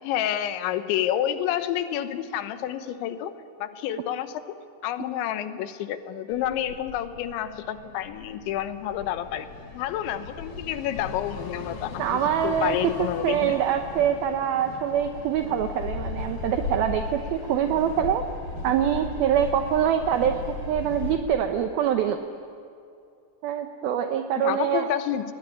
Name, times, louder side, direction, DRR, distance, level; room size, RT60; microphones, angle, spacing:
voice 1, 0.0-3.3 3.6-9.5 9.7-13.6 24.3-25.3, left 11 dB, 85° left, 11 dB, 3.4 m, -29 dB
sound 1, 6.3-21.2, left 4 dB, 60° left, 4.0 m, -37 dB
voice 2, 12.0-18.2 18.6-20.4 20.7-22.2 23.4-24.9, right 9 dB, 75° right, 6 dB, 2.5 m, -24 dB
28.5 x 21.0 x 10.0 m, 2.5 s
omnidirectional pair, 5.1 m